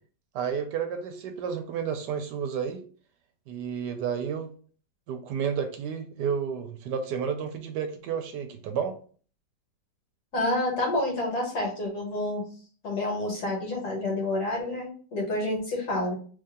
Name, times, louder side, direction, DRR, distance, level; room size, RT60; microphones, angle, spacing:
voice 1, 0.3-2.8 3.5-4.5 5.1-8.9, right 7 dB, 75° right, 7 dB, 1.1 m, -31 dB
voice 2, 10.3-12.4 12.8-16.1, left 1 dB, 65° left, -1 dB, 1.8 m, -28 dB
3.3 x 2.7 x 3.6 m, 0.42 s
omnidirectional pair, 1.9 m